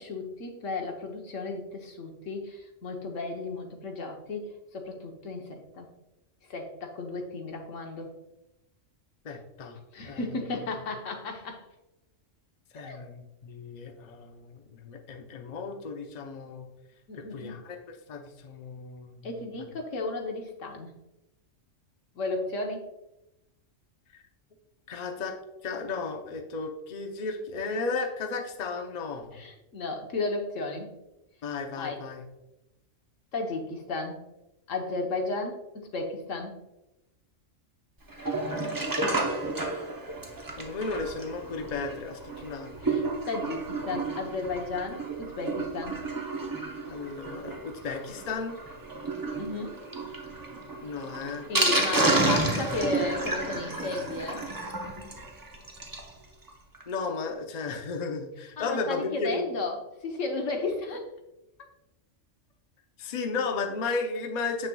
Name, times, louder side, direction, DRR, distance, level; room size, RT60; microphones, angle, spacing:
voice 1, 0.0-5.9 6.5-8.1 9.9-11.6 12.8-13.0 17.1-17.6 19.2-20.9 22.2-22.9 29.3-30.9 31.8-32.0 33.3-34.2 34.7-35.6 35.9-36.6 42.4-42.5 42.8-46.0 49.4-49.8 51.5-54.4 58.6-61.1, left 3 dB, 75° left, 2 dB, 1.3 m, -34 dB
voice 2, 9.2-9.8 10.1-10.2 12.7-16.7 17.1-19.3 24.1-24.2 24.9-25.3 25.6-29.4 31.4-32.2 40.6-43.1 46.9-48.6 50.8-51.4 56.9-59.5 63.0-64.7, left 4 dB, 40° left, 3 dB, 0.7 m, -34 dB
Sink (filling or washing), 38.1-56.1 56.5-56.6 56.7-56.8 57.2-57.3, right 2 dB, 20° right, 0.7 m, -31 dB
7.5 x 6.4 x 2.3 m, 0.93 s
omnidirectional pair, 1.3 m